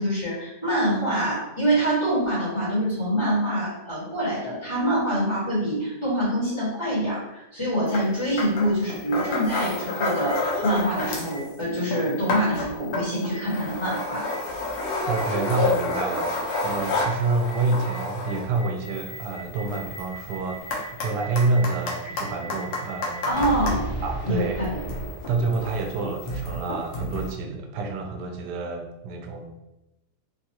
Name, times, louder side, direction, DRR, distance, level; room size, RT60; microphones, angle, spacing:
voice 1, 0.0-14.3 23.2-23.9 24.3-24.7, right 1 dB, 20° left, -10 dB, 1.3 m, -25 dB
sound 1, 7.9-8.1 8.4-11.4 11.7-23.8 24.5-27.3, left 2 dB, 70° left, 1.1 m, -30 dB
Boom, 8.2-8.3 9.2-9.3 10.2-10.3 11.3-11.4 12.3-12.4 13.3-13.4 14.3-14.4 15.1-15.2 15.9-16.0 16.5-16.6 17.0-17.1 17.5-17.6 17.9-18.0 18.2-25.8, equal, 35° right, 0.5 m, -36 dB
voice 2, 15.1-16.3 16.6-20.7 21.0-23.4 24.0-24.6 25.3-29.5, right 3 dB, 90° right, 3 dB, 1.2 m, -27 dB
3.4 x 2.4 x 2.8 m, 0.94 s
omnidirectional pair, 1.8 m